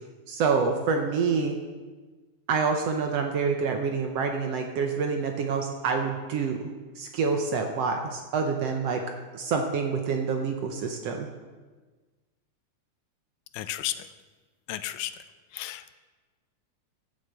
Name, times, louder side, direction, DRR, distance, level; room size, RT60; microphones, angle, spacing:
voice 1, 0.3-1.6 2.5-6.7 7.0-9.0 9.3-11.3, right 5 dB, 70° right, 4 dB, 1.6 m, -27 dB
voice 2, 13.5-14.1 14.7-15.1 15.5-15.9, left 13 dB, 90° left, 12 dB, 2.2 m, -33 dB
11.0 x 7.2 x 7.9 m, 1.3 s
omnidirectional pair, 3.6 m